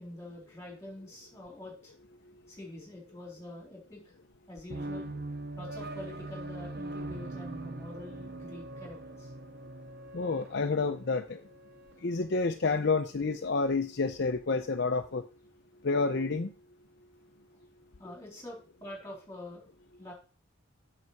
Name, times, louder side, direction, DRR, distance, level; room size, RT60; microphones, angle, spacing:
voice 1, 0.0-1.9 2.5-4.1 4.5-5.1 5.6-9.3 18.0-19.7 20.0-20.1, left 1 dB, 15° left, -1 dB, 3.8 m, -45 dB
sound 1, 4.7-12.0, right 2 dB, 50° right, 0.8 m, -42 dB
voice 2, 10.1-11.4 12.0-15.2 15.8-16.5, left 4 dB, 55° left, 6 dB, 0.6 m, -29 dB
7.9 x 6.8 x 4.7 m, 0.36 s
head